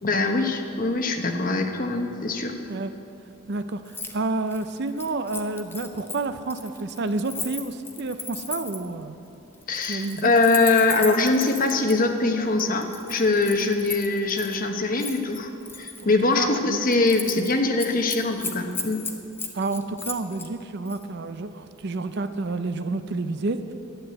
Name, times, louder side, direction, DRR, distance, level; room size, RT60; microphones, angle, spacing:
voice 1, 0.0-2.5 9.7-15.5 15.8-19.0, left 3 dB, 40° left, 5 dB, 1.0 m, -23 dB
voice 2, 3.5-9.2 9.9-10.3 16.0-16.8 17.4-17.5 19.5-23.7, right 3 dB, 50° right, 10 dB, 0.5 m, -29 dB
Keys jangling, 3.9-4.1 4.4-8.9 9.6-11.9 12.6-14.6 15.0-16.0 16.4-16.6 16.9-17.5 17.8-20.5 20.9-21.0, left 4 dB, 10° left, 0.7 m, -36 dB
11.5 x 9.9 x 7.7 m, 2.7 s
head